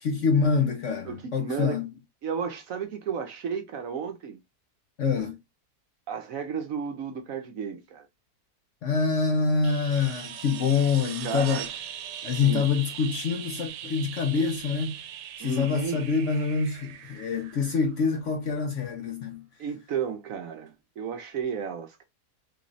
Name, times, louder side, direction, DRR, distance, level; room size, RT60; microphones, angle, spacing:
voice 1, 0.0-1.9 5.0-5.4 8.8-11.6 12.2-15.0 15.4-19.4, left 5 dB, 60° left, 0.8 m, -26 dB
voice 2, 1.0-1.8 2.2-4.4 6.1-8.1 11.2-11.8 12.3-12.7 15.4-16.0 19.6-22.0, right 6 dB, 65° right, 1.0 m, -33 dB
sound 1, 9.6-18.3 20.7-20.8, right 10 dB, 90° right, 1.2 m, -40 dB
3.8 x 3.0 x 2.6 m
omnidirectional pair, 1.8 m